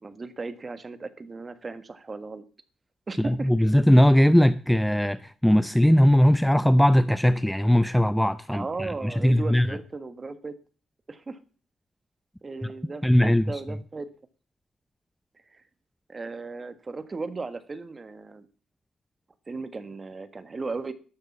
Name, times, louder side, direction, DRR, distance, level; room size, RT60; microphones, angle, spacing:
voice 1, 0.0-2.4 3.1-3.5 8.5-10.5 11.1-11.4 12.4-14.1 15.5-15.6 16.1-18.5 19.5-20.9, right 3 dB, 30° right, 1.5 m, -36 dB
voice 2, 3.2-9.7 13.0-13.5, equal, 5° left, 0.6 m, -20 dB
12.5 x 6.8 x 8.4 m
cardioid pair, 90°, 0 cm